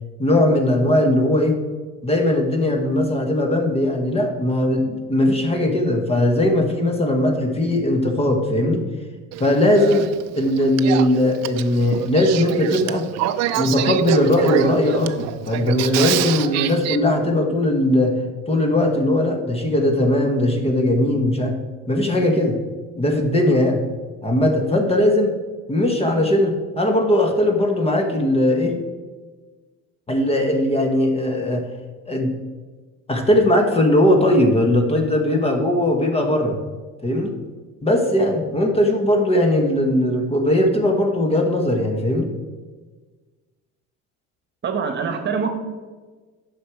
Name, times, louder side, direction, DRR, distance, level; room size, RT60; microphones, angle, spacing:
voice 1, 0.2-1.6 2.0-8.8 9.4-10.1 10.3-13.1 13.6-18.2 18.5-21.5 21.9-22.6 23.0-23.8 24.2-25.3 25.7-28.7 30.1-31.7 32.1-32.3 33.1-36.6 37.0-37.4 37.8-42.3, left 1 dB, 20° left, 3 dB, 1.3 m, -19 dB
Male speech man speaking / Female speech woman speaking / Conversation, 9.3-17.0, right 12 dB, 60° right, 0.6 m, -26 dB
voice 2, 44.6-45.5, right 6 dB, 35° right, 6 dB, 1.3 m, -24 dB
9.6 x 6.2 x 4.8 m, 1.4 s
cardioid pair, 120°, 30 cm